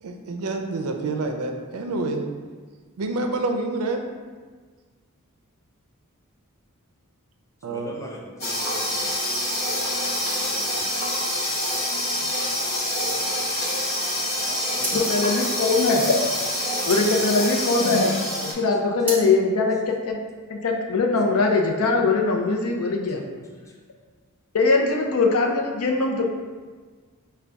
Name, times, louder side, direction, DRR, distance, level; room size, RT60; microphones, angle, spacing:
voice 1, 0.0-2.2 3.0-4.1 7.6-7.9, right 2 dB, 75° right, 4 dB, 0.5 m, -27 dB
voice 2, 7.7-9.1 10.5-10.8 12.1-12.6 14.0-15.2 16.7-17.1 23.7-23.8, left 1 dB, 15° left, -1 dB, 0.5 m, -42 dB
sound 1, 8.4-18.5, left 1 dB, 45° left, 0.9 m, -26 dB
sound 2, 14.7-18.1 18.5-19.3, right 1 dB, 10° right, 0.9 m, -34 dB
voice 3, 14.9-16.2 16.9-18.2 18.4-20.2 20.5-23.2 24.5-26.3, left 3 dB, 75° left, 1 dB, 0.6 m, -21 dB
5.1 x 2.3 x 3.4 m, 1.5 s
head